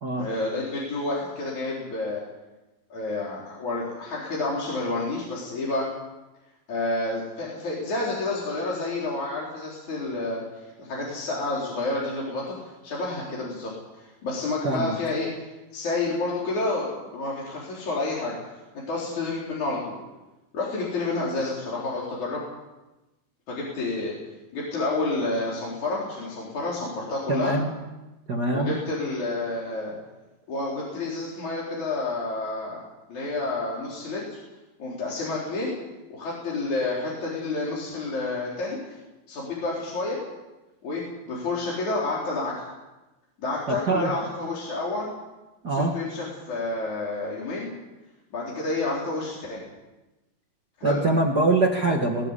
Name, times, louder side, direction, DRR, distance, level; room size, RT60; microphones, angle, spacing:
voice 1, 0.2-2.2 2.9-5.9 6.7-15.5 15.7-20.0 20.5-22.4 23.5-24.1 24.5-27.5 28.5-29.9 30.5-32.8 33.1-34.4 34.8-35.7 36.1-39.0 39.3-40.2 40.8-42.7 43.4-45.1 45.7-47.7 48.3-49.6 50.8-51.0, left 2 dB, 50° left, -5 dB, 5.4 m, -29 dB
voice 2, 27.3-27.7 28.3-28.7 43.7-44.1 45.6-45.9 50.8-52.3, right 2 dB, 45° right, 2 dB, 1.3 m, -23 dB
20.0 x 18.0 x 8.4 m, 1.1 s
omnidirectional pair, 4.3 m